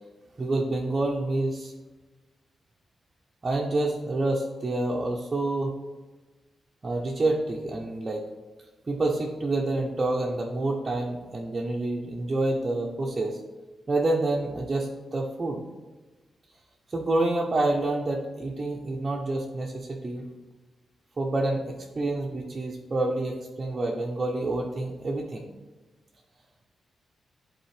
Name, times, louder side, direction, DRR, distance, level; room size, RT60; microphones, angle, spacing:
voice 1, 0.4-1.7 3.4-5.7 6.8-8.2 8.9-13.4 13.9-15.6 16.9-20.3 21.2-25.5, right 2 dB, 30° right, -1 dB, 0.7 m, -28 dB
10.5 x 4.1 x 3.3 m, 1.3 s
wide cardioid pair, 130°, 0 cm